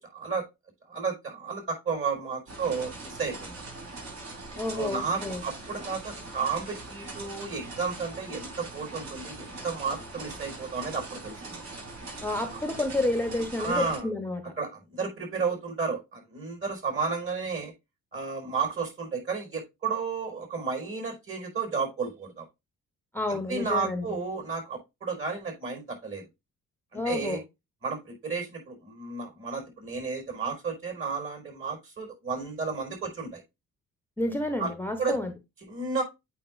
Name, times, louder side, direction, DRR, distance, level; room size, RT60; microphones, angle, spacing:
voice 1, 0.1-0.5 0.9-3.6 4.7-11.6 13.6-14.1 14.6-17.7 18.1-22.4 23.5-26.3 26.9-27.4 27.8-33.4 34.6-34.7 35.0-35.2 35.7-36.0, right 5 dB, 45° right, 5.0 m, -32 dB
sound 1, 2.5-14.0, right 3 dB, 65° right, 4.3 m, -41 dB
voice 2, 4.5-5.4 12.2-14.5 23.1-24.0 26.9-27.4 34.2-35.3, left 2 dB, 5° left, 1.0 m, -30 dB
8.5 x 5.3 x 2.5 m
cardioid pair, 90°, 30 cm